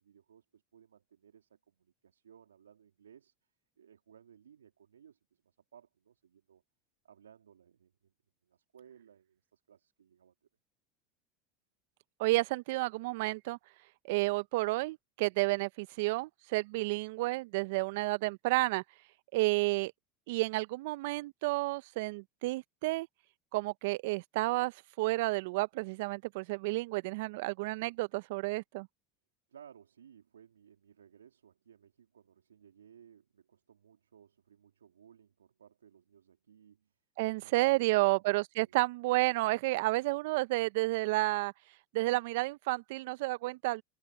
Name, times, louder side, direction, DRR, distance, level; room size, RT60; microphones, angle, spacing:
voice 1, 0.0-3.3 3.8-6.6 7.0-8.1 8.4-10.3 19.5-19.6 29.5-37.0 37.2-38.8, right 8 dB, 85° right, 3.6 m, -60 dB
voice 2, 12.2-13.6 14.1-18.8 19.3-19.9 20.3-23.1 23.5-28.9 37.2-41.5 41.9-43.8, right 21 dB, 65° right, 0.9 m, -31 dB
hypercardioid pair, 80°, 0 cm